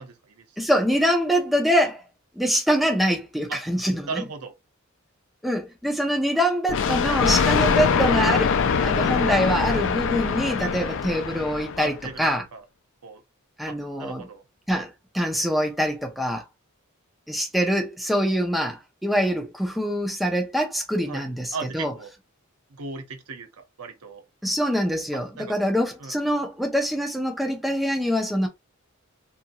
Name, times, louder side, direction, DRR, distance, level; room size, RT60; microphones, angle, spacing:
voice 1, 0.0-0.6 3.5-3.6 4.1-4.5 11.8-12.6 13.0-13.2 13.7-14.4 21.1-21.3 21.5-22.1 22.7-24.2 25.4-25.7 26.0-26.1, right 4 dB, 85° right, 0.7 m, -37 dB
voice 2, 0.6-2.0 2.4-4.2 5.4-12.4 13.6-14.3 14.7-16.4 17.3-21.9 24.4-28.5, equal, ahead, 0.5 m, -24 dB
Thunder, 6.7-12.0, left 6 dB, 60° left, 0.4 m, -23 dB
2.9 x 2.5 x 2.3 m
head